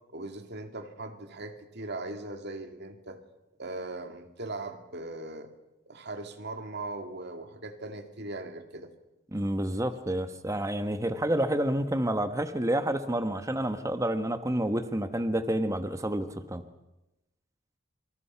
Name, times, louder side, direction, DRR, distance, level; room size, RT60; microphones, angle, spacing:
voice 1, 0.1-3.2 3.6-5.5 5.9-8.9, right 2 dB, 55° right, 7 dB, 2.4 m, -39 dB
voice 2, 9.3-16.6, right 1 dB, 15° right, 10 dB, 1.1 m, -29 dB
26.5 x 25.5 x 5.7 m, 0.95 s
head